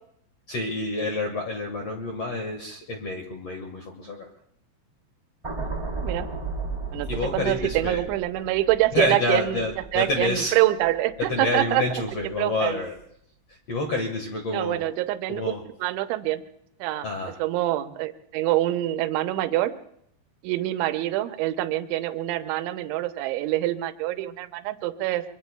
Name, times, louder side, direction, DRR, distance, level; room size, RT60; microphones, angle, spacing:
voice 1, 0.5-4.3 7.1-8.0 8.9-10.6 11.2-13.0 13.7-14.8 15.3-15.6 17.0-17.4, left 2 dB, 75° left, 2 dB, 1.4 m, -28 dB
sound 1, 5.4-11.7 12.1-12.4, right 4 dB, 10° right, 1.8 m, -35 dB
voice 2, 6.9-9.6 9.9-11.8 12.4-12.8 14.5-15.5 15.8-16.4 16.8-19.7 20.4-25.2, right 15 dB, 80° right, 8 dB, 3.1 m, -25 dB
26.0 x 24.0 x 2.3 m, 0.72 s
omnidirectional pair, 5.4 m